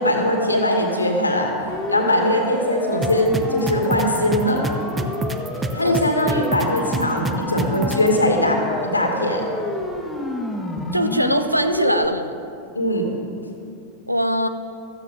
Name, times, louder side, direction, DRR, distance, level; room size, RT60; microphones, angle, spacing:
voice 1, 0.0-1.5 1.9-4.6 5.7-9.4 12.7-13.1, left 1 dB, 80° left, 2 dB, 2.1 m, -21 dB
Siren, 1.7-12.1, left 1 dB, 5° left, 1.6 m, -30 dB
sound 1, 3.0-8.1, right 2 dB, 15° right, 0.9 m, -26 dB
voice 2, 10.9-12.3 14.1-14.5, equal, 90° right, 9 dB, 0.7 m, -21 dB
15.5 x 14.5 x 3.8 m, 2.6 s
figure-of-eight pair, 90°, 0 cm